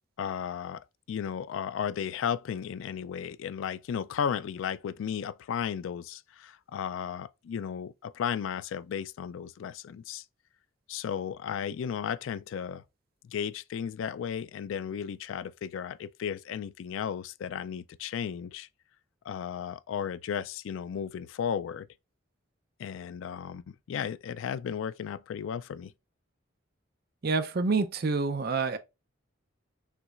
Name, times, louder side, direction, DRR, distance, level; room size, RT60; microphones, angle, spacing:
voice 1, 0.2-10.2 10.9-12.8 13.2-18.7 19.2-21.9 22.8-25.9, left 8 dB, 70° left, 0.3 m, -34 dB
voice 2, 27.2-28.8, right 4 dB, 50° right, 0.5 m, -27 dB
5.7 x 3.2 x 2.4 m
head